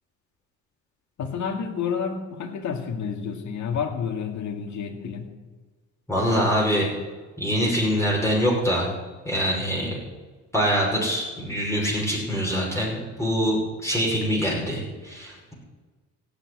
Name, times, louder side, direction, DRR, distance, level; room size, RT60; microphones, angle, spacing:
voice 1, 1.2-5.3, left 6 dB, 70° left, 3 dB, 2.2 m, -30 dB
voice 2, 6.1-6.9 7.4-8.9 9.2-10.0 10.5-15.5, equal, 10° left, -3 dB, 5.7 m, -24 dB
16.5 x 6.9 x 9.7 m, 1.4 s
cardioid pair, 90°, 30 cm